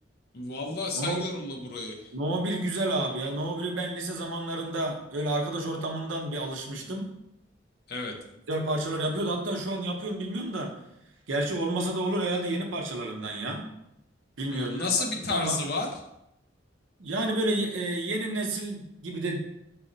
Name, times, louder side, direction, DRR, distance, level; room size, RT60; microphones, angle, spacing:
voice 1, 0.3-2.1 7.9-8.1 14.5-15.9, left 3 dB, 55° left, 1 dB, 0.7 m, -31 dB
voice 2, 0.9-1.3 2.1-7.1 8.5-10.7 11.3-13.6 14.4-15.6 17.0-19.4, right 1 dB, 85° right, 2 dB, 0.7 m, -30 dB
4.6 x 2.1 x 3.8 m, 0.83 s
head